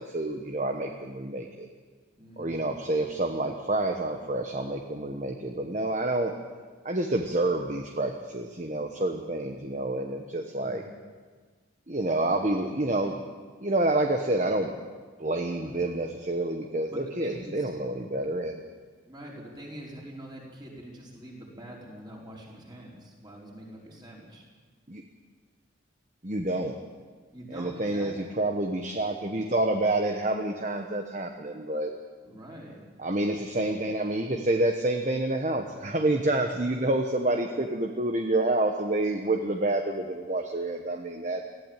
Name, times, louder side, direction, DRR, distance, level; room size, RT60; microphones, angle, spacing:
voice 1, 0.0-1.7 2.4-6.3 6.8-10.8 11.9-13.2 13.6-14.7 15.2-18.6 24.9-25.0 26.2-26.7 27.5-31.9 33.0-41.4, right 2 dB, 40° right, 4 dB, 1.1 m, -28 dB
voice 2, 2.2-2.6 10.6-10.9 15.6-15.9 16.9-17.7 19.1-24.4 27.3-28.3 32.2-32.9, right 1 dB, 25° right, -3 dB, 4.9 m, -44 dB
19.0 x 15.5 x 9.0 m, 1.5 s
head